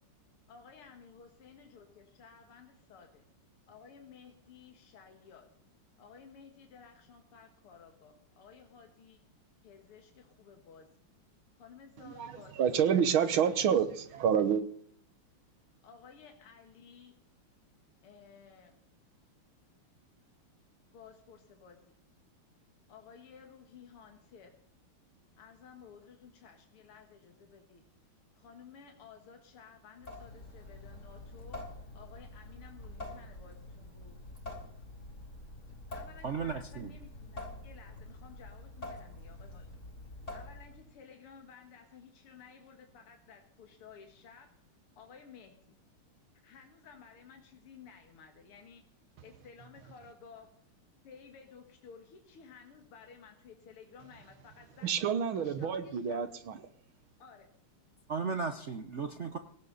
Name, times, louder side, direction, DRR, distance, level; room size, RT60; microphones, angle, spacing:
voice 1, 0.5-3.2 3.7-5.5 6.0-9.2 9.6-10.9 11.5-12.8 13.1-13.4 15.8-17.1 18.0-18.8 20.9-21.9 22.9-24.5 25.4-27.8 28.3-31.6 31.9-34.2 35.9-39.7 40.3-44.5 45.0-45.7 46.4-48.8 49.2-50.5 51.0-54.9 55.3-56.2 57.2-57.5, left 6 dB, 80° left, 4 dB, 2.6 m, -55 dB
voice 2, 12.0-14.6 54.8-56.6, right 8 dB, 70° right, 12 dB, 1.9 m, -28 dB
Water tap faucet / Sink (filling or washing) / Drip, 30.0-40.9, left 2 dB, 30° left, 4.8 m, -46 dB
voice 3, 36.2-36.9 58.1-59.4, right 5 dB, 50° right, 8 dB, 0.8 m, -35 dB
18.5 x 17.0 x 4.0 m, 0.64 s
omnidirectional pair, 2.4 m